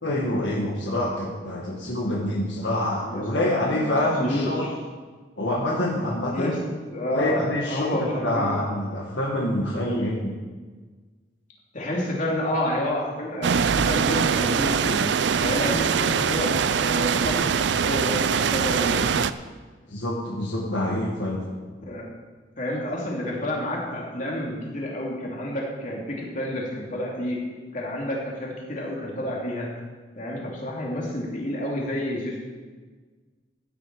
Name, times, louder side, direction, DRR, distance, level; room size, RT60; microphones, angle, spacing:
voice 1, 0.0-4.7 5.4-6.5 7.1-10.3 19.9-21.5, left 1 dB, 70° left, -2 dB, 1.8 m, -26 dB
voice 2, 3.0-4.6 6.3-6.6 6.9-7.4 7.7-8.5 11.7-15.0 15.4-19.0 21.9-22.1 22.6-27.4 27.7-29.7 30.2-32.4, left 1 dB, 40° left, -3 dB, 2.9 m, -29 dB
sound 1, 13.4-19.3, right 6 dB, 65° right, 0.4 m, -23 dB
15.0 x 9.6 x 4.8 m, 1.4 s
head